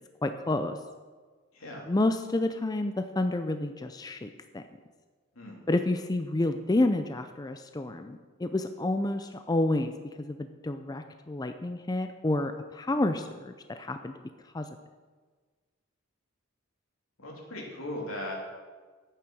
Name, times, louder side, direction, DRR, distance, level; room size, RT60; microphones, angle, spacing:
voice 1, 0.2-0.8 1.9-4.6 5.7-9.9 10.2-14.1 14.5-14.7, left 2 dB, 20° left, 8 dB, 0.4 m, -29 dB
voice 2, 1.5-1.9 5.3-5.6 17.2-18.3, left 1 dB, 85° left, -1 dB, 3.0 m, -38 dB
9.9 x 8.8 x 6.2 m, 1.4 s
head